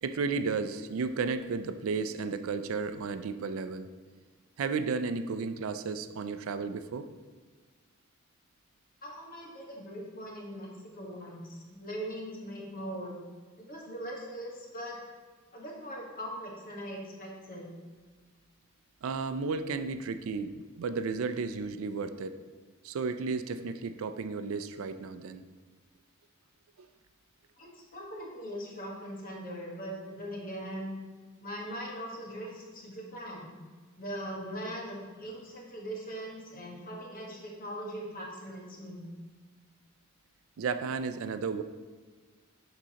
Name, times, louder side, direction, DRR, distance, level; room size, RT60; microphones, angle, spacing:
voice 1, 0.0-3.9 4.6-7.1 19.0-22.4 22.8-25.4 26.8-26.9 40.6-41.6, right 4 dB, 85° right, 11 dB, 0.4 m, -33 dB
voice 2, 9.0-13.2 13.6-15.0 15.5-17.7 27.6-30.9 31.4-33.5 34.0-39.0, equal, 45° left, -2 dB, 1.4 m, -40 dB
11.0 x 3.8 x 2.9 m, 1.4 s
head